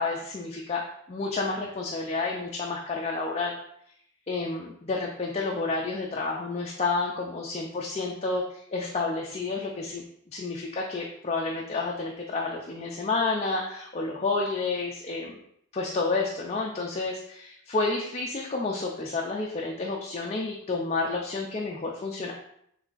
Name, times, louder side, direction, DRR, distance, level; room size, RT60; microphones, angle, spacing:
voice 1, 0.0-3.5 4.3-15.4 15.7-22.3, left 3 dB, 30° left, -1 dB, 0.4 m, -30 dB
3.5 x 3.2 x 3.9 m, 0.70 s
head